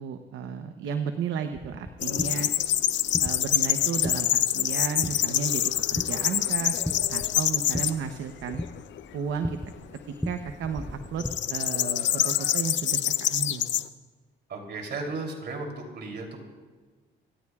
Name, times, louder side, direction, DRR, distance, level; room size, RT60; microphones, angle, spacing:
voice 1, 0.0-2.5 3.2-6.7 7.1-8.6 9.1-9.6 10.3-11.2 11.5-13.7, right 7 dB, 75° right, 7 dB, 0.9 m, -33 dB
sound 1, 1.5-11.3, left 1 dB, ahead, 0.7 m, -38 dB
sound 2, 2.0-7.9 8.5-9.0 11.2-13.8, left 11 dB, 65° left, 0.6 m, -26 dB
voice 2, 14.5-16.4, right 3 dB, 60° right, 2 dB, 3.3 m, -35 dB
26.5 x 15.0 x 2.4 m, 1.4 s
cardioid pair, 90°, 20 cm